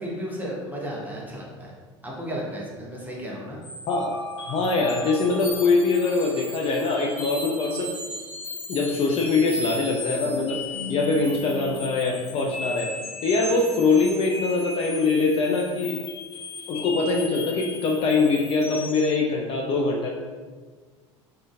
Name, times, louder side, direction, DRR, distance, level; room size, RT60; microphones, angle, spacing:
voice 1, 0.0-1.7 2.0-3.6, equal, 10° right, -4 dB, 0.8 m, -33 dB
sound 1, 3.6-19.1, left 2 dB, 60° left, 1.0 m, -36 dB
voice 2, 3.9-4.2 4.5-7.9 8.7-10.6 10.9-12.9 13.2-16.0 16.7-20.1, left 3 dB, 40° left, 0 dB, 0.4 m, -23 dB
3.6 x 2.2 x 2.4 m, 1.4 s
figure-of-eight pair, 70°, 16 cm